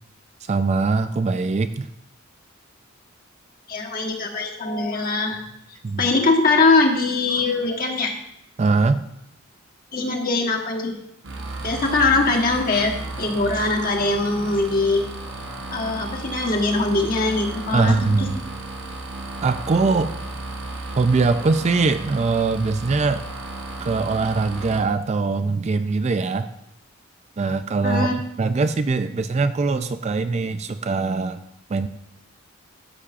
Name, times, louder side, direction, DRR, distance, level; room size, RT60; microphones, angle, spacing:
voice 1, 0.5-1.9 5.8-6.1 8.6-9.1 17.7-18.4 19.4-20.1 21.0-23.2 23.8-26.5 27.4-28.1 28.4-31.4 31.7-31.9, right 3 dB, 30° right, 10 dB, 0.3 m, -22 dB
voice 2, 3.7-5.4 6.0-8.1 9.9-10.9 11.6-15.1 15.7-18.4 27.8-28.1, left 3 dB, 45° left, 1 dB, 1.2 m, -22 dB
sound 1, 11.2-24.8, right 2 dB, 60° right, 1.1 m, -34 dB
13.0 x 6.8 x 2.5 m, 0.83 s
head